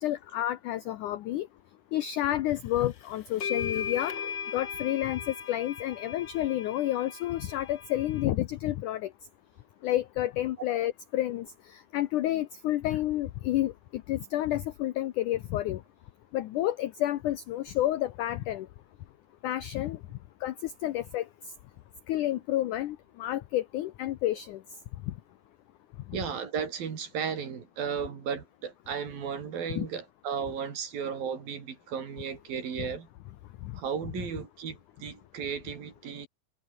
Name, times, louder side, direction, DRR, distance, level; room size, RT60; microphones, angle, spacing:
voice 1, 0.0-1.5 1.9-4.2 4.5-9.1 9.8-15.8 16.3-18.7 19.4-20.0 20.4-21.3 22.1-24.6 25.1-25.2 26.1-26.2 29.7-29.9, left 14 dB, 85° left, 1.7 m, -30 dB
sound 1, 2.8-2.9 3.4-8.2, left 7 dB, 50° left, 1.4 m, -37 dB
voice 2, 26.1-33.1 33.7-36.3, right 7 dB, 60° right, 5.0 m, -35 dB
omnidirectional pair, 4.8 m